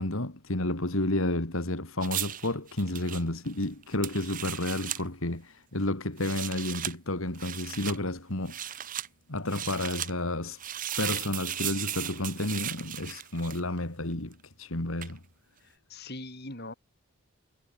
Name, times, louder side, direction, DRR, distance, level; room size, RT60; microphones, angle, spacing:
voice 1, 0.0-8.8 9.3-10.6 11.0-15.2, left 1 dB, 70° left, 2.9 m, -31 dB
sound 1, 2.0-5.0 6.1-6.9 7.3-8.0 8.5-9.1 9.5-10.1 10.6-13.8 15.0-15.2, right 11 dB, 40° right, 0.9 m, -36 dB
voice 2, 15.6-16.7, left 2 dB, 45° left, 6.3 m, -41 dB
head